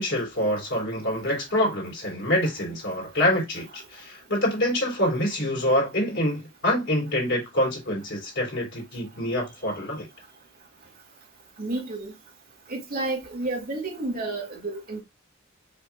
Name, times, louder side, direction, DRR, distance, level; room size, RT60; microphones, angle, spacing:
voice 1, 0.0-10.1, left 1 dB, 60° left, 3.4 m, -26 dB
voice 2, 11.6-12.1 12.7-15.0, right 2 dB, 45° right, 2.1 m, -31 dB
5.7 x 3.8 x 2.4 m
head